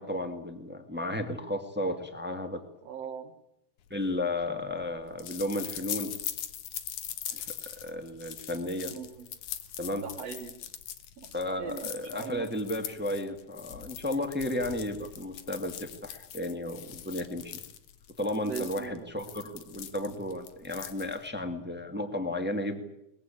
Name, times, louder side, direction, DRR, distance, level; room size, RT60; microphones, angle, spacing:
voice 1, 0.0-2.6 3.9-6.1 7.3-8.9 9.8-10.0 11.3-17.6 18.2-22.8, left 1 dB, 5° right, 6 dB, 1.6 m, -33 dB
voice 2, 2.9-3.3 8.9-9.3 10.0-10.6 11.2-12.5 18.4-19.1, right 7 dB, 60° right, 6 dB, 2.4 m, -40 dB
sound 1, 4.0-21.4, left 10 dB, 80° left, 2.7 m, -42 dB
22.0 x 21.5 x 8.7 m, 0.83 s
omnidirectional pair, 3.4 m